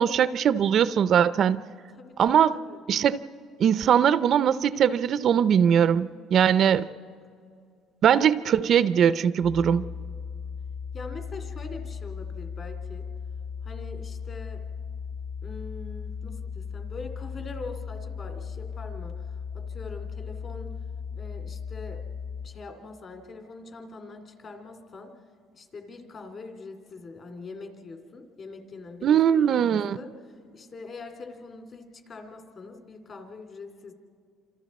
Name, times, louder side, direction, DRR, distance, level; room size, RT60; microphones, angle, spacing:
voice 1, 0.0-1.6 2.2-2.6 2.9-3.2 3.6-6.9 8.0-9.8 29.0-30.0, right 8 dB, 45° right, 15 dB, 0.4 m, -21 dB
voice 2, 1.9-2.8 10.9-13.1 13.6-14.6 15.4-20.8 21.1-22.0 22.4-25.1 25.5-30.1 30.5-33.9, left 3 dB, 35° left, 5 dB, 2.4 m, -43 dB
sound 1, 9.4-22.5, left 6 dB, 75° left, 5.1 m, -37 dB
28.0 x 26.5 x 4.2 m, 2.3 s
cardioid pair, 135°, 0 cm